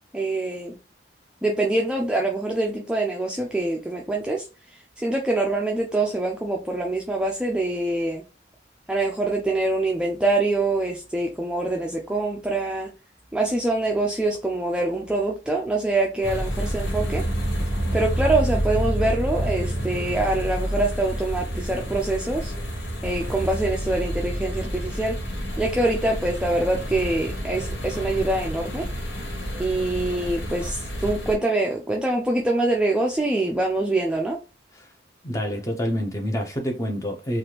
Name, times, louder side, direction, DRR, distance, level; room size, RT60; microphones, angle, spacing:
voice 1, 0.1-0.8 1.4-8.2 8.9-12.9 13.3-17.2 17.9-22.5 23.0-25.2 25.6-28.9 29.6-34.4, right 2 dB, 5° right, 0.3 m, -25 dB
sound 1, 16.2-31.3, equal, 80° left, 1.4 m, -29 dB
voice 2, 35.2-37.4, equal, 15° left, 0.7 m, -27 dB
3.3 x 2.4 x 2.9 m
head